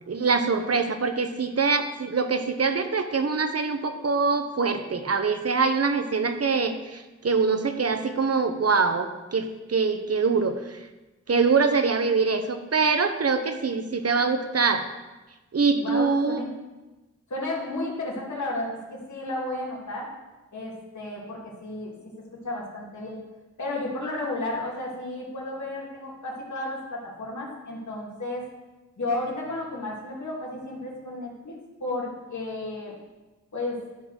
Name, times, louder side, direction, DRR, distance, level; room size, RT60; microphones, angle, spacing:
voice 1, 0.1-10.8 11.3-14.8 15.5-16.4, right 4 dB, 55° right, 8 dB, 0.9 m, -24 dB
voice 2, 15.8-16.5 17.3-20.1 20.5-23.2 23.6-28.5 29.0-33.0 33.5-33.8, left 2 dB, 70° left, -4 dB, 2.6 m, -33 dB
11.5 x 3.9 x 6.3 m, 1.1 s
cardioid pair, 50°, 30 cm